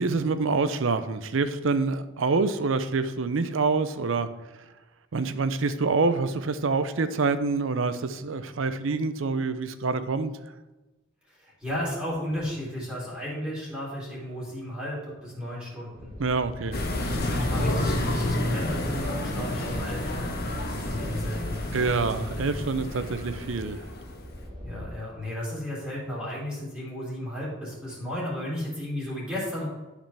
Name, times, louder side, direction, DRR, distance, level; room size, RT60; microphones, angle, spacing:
voice 1, 0.0-4.3 5.1-10.3 16.2-16.8 21.7-23.8, right 4 dB, 70° right, 0.6 m, -26 dB
voice 2, 11.3-16.1 17.1-21.6 24.6-29.7, left 1 dB, 5° right, 2.9 m, -34 dB
sound 1, 15.9-25.0, equal, 25° right, 1.6 m, -42 dB
sound 2, 16.7-24.2, left 1 dB, 50° left, 1.0 m, -30 dB
12.0 x 5.0 x 3.4 m
head